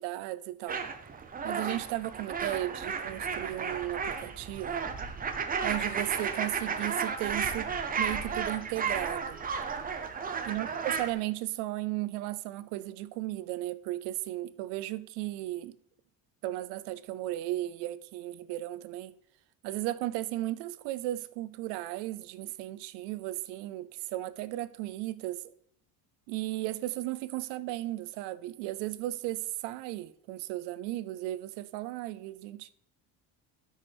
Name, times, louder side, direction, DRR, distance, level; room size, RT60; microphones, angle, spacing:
voice 1, 0.0-0.8 1.4-4.9 5.6-9.4 10.5-15.8 16.4-19.1 19.6-25.5 26.3-32.7, right 16 dB, 85° right, 0.6 m, -35 dB
sound 1, 0.7-11.1, right 6 dB, 20° right, 0.7 m, -33 dB
12.5 x 6.5 x 3.4 m
cardioid pair, 135°, 40 cm